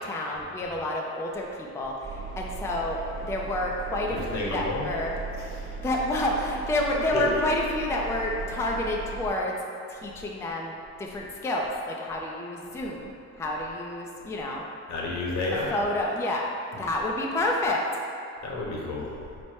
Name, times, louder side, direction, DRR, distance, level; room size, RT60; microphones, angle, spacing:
voice 1, 0.0-5.2 5.8-9.5 9.9-13.1 13.4-14.6 15.7-16.4 16.8-17.8, left 1 dB, 10° left, -1 dB, 0.3 m, -29 dB
Engine, 2.0-9.3, right 5 dB, 30° right, 0.6 m, -38 dB
voice 2, 4.1-4.9 5.6-5.7 7.1-7.4 14.9-15.7 18.4-19.1, left 2 dB, 65° left, -3 dB, 0.9 m, -30 dB
4.3 x 2.1 x 4.5 m, 2.5 s
cardioid pair, 90°, 30 cm